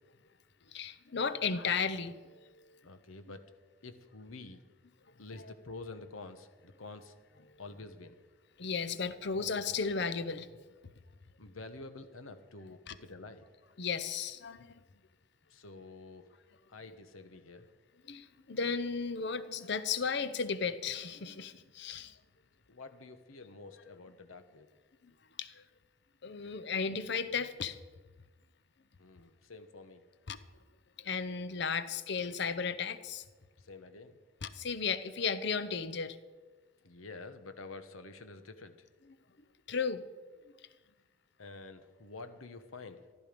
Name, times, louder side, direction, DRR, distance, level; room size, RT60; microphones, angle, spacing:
voice 1, 0.7-2.8 5.1-5.2 5.4-5.5 7.5-7.6 8.6-10.7 12.9-13.0 13.8-14.8 18.0-22.2 25.0-25.1 25.4-25.6 26.2-27.8 30.3-30.4 31.0-33.2 34.4-36.2 39.7-40.1, left 5 dB, 55° left, 13 dB, 0.7 m, -35 dB
voice 2, 2.8-3.4 3.8-4.6 5.2-7.1 7.6-8.2 11.4-13.5 15.5-16.3 16.7-17.7 21.9-22.0 22.7-24.7 29.0-30.0 33.6-34.2 36.8-38.9 41.4-43.0, left 3 dB, 85° left, 9 dB, 1.2 m, -48 dB
14.5 x 12.0 x 5.2 m, 1.3 s
head